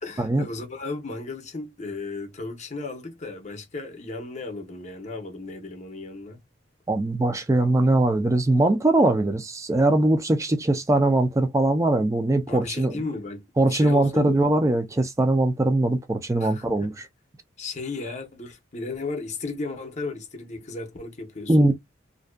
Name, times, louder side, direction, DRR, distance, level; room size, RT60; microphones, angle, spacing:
voice 1, 0.0-6.4 12.5-14.4 16.4-16.9 17.6-21.7, left 3 dB, 40° left, 0.7 m, -35 dB
voice 2, 6.9-13.0 13.6-17.1 21.5-21.7, right 2 dB, 15° right, 0.4 m, -21 dB
2.6 x 2.2 x 2.2 m
head